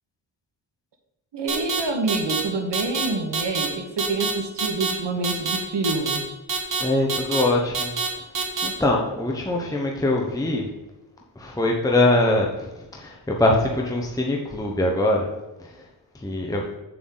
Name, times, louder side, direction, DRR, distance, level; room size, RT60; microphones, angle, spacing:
voice 1, 1.3-6.2, right 3 dB, 65° right, 3 dB, 1.9 m, -27 dB
sound 1, 1.5-1.8 2.1-2.4 2.7-3.1 3.3-3.7 4.0-4.3 4.6-4.9 5.2-5.6 5.8-6.2 6.5-6.8 7.1-7.4 7.7-8.1 8.3-8.7, right 4 dB, 45° right, 1.9 m, -25 dB
voice 2, 6.8-7.9 8.6-10.6 11.4-15.3 16.1-16.6, left 1 dB, 10° left, -1 dB, 1.1 m, -23 dB
8.2 x 7.8 x 4.0 m, 1.1 s
wide cardioid pair, 115°, 45 cm